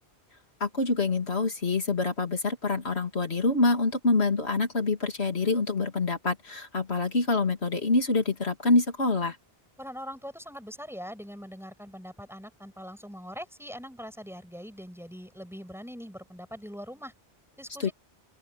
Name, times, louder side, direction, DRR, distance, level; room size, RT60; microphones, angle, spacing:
voice 1, 0.6-9.4 17.8-17.9, left 3 dB, 80° left, 2.9 m, -26 dB
voice 2, 9.8-17.2 17.6-17.9, equal, ahead, 7.2 m, -42 dB
open air
omnidirectional pair, 1.1 m